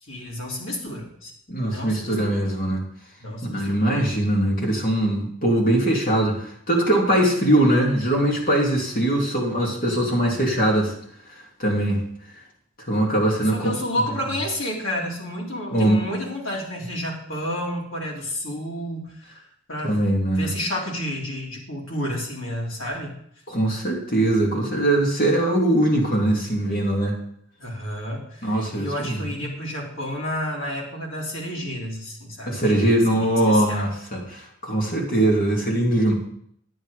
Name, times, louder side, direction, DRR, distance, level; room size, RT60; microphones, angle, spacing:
voice 1, 0.0-1.3 1.6-2.4 3.2-3.8 13.5-20.0 20.4-23.2 27.6-33.9 35.5-35.6, equal, 90° left, -2 dB, 3.4 m, -31 dB
voice 2, 1.5-2.8 3.5-10.9 11.6-12.0 12.9-13.7 15.7-16.0 19.8-20.5 23.5-27.2 28.4-29.2 32.4-36.1, right 1 dB, 45° left, -1 dB, 2.9 m, -21 dB
10.5 x 9.1 x 5.1 m, 0.68 s
head